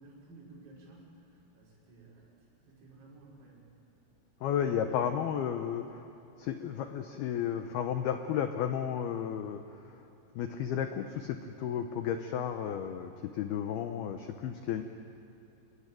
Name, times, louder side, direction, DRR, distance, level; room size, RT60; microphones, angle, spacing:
voice 1, 0.0-2.3 2.7-3.7, right 2 dB, 85° right, -4 dB, 8.6 m, -54 dB
voice 2, 4.4-6.1 6.4-10.0 10.4-14.8, left 9 dB, 90° left, 6 dB, 2.2 m, -33 dB
28.0 x 21.0 x 9.2 m, 2.8 s
omnidirectional pair, 5.9 m